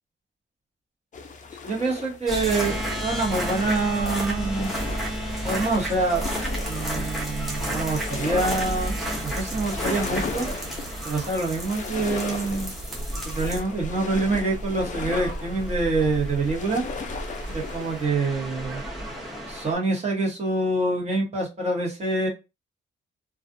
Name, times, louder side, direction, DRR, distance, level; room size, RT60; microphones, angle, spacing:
sound 1, 1.1-18.1, left 5 dB, 40° left, 0.5 m, -37 dB
voice 1, 1.6-4.7 5.4-6.2 6.7-9.0 9.2-10.5 11.0-12.7 13.2-16.8 17.5-18.8 19.5-22.3, right 3 dB, 35° right, -1 dB, 1.1 m, -26 dB
sound 2, 2.3-19.7, right 1 dB, ahead, 0.8 m, -31 dB
2.4 x 2.3 x 2.5 m, 0.26 s
wide cardioid pair, 145°, 20 cm